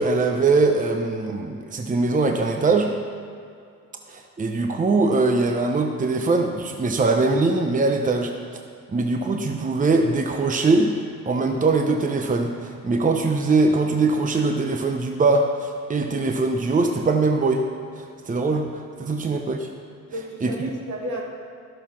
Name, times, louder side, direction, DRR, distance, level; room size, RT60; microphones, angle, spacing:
voice 1, 0.0-2.9 4.1-8.3 8.9-17.7 18.0-19.7 20.4-20.7, right 3 dB, 25° right, 3 dB, 0.9 m, -22 dB
voice 2, 19.0-19.4 20.1-21.2, equal, 75° right, -1 dB, 2.4 m, -34 dB
12.5 x 6.8 x 5.8 m, 2.4 s
cardioid pair, 90°, 30 cm